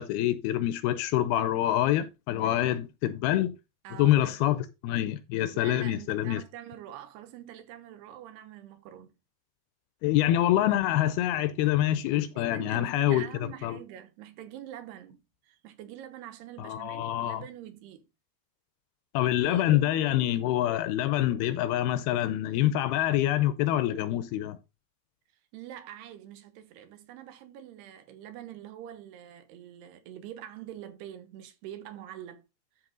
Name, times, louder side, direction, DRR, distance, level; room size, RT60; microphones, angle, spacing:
voice 1, 0.0-3.5 4.0-6.4 10.0-13.3 13.6-13.8 16.6-17.4 19.1-24.6, left 13 dB, 80° left, 2.4 m, -26 dB
voice 2, 2.3-2.7 3.8-4.5 5.5-9.1 12.4-18.0 19.5-19.7 25.5-32.5, right 11 dB, 85° right, 3.1 m, -45 dB
13.0 x 4.4 x 3.8 m
omnidirectional pair, 4.8 m